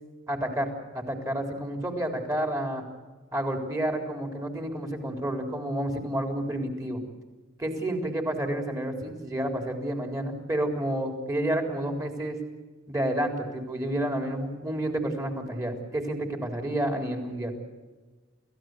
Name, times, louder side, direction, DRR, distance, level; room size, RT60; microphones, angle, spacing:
voice 1, 0.3-2.8 3.3-7.0 7.6-12.4 12.9-17.5, right 1 dB, 15° right, 4 dB, 3.8 m, -30 dB
29.5 x 15.5 x 8.0 m, 1.3 s
head